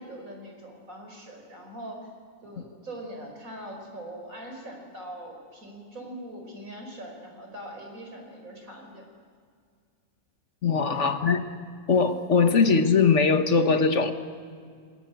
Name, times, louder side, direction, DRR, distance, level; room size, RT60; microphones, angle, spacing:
voice 1, 0.0-2.1 2.4-9.0 10.8-11.1, right 1 dB, 80° right, 3 dB, 5.2 m, -42 dB
voice 2, 10.6-11.4 11.9-14.1, left 5 dB, 60° left, 7 dB, 1.6 m, -21 dB
29.0 x 19.5 x 7.9 m, 2.1 s
omnidirectional pair, 1.4 m